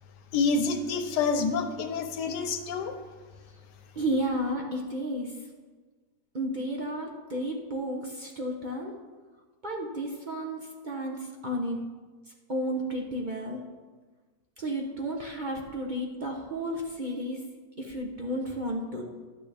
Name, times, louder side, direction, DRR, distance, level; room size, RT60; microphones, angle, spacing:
voice 1, 0.3-3.0, left 4 dB, 85° left, 7 dB, 1.4 m, -27 dB
voice 2, 3.9-5.4 6.3-8.9 9.6-11.8 12.5-13.6 14.6-17.4 17.8-19.2, equal, 40° right, 0 dB, 0.7 m, -32 dB
11.0 x 9.0 x 3.4 m, 1.4 s
omnidirectional pair, 1.8 m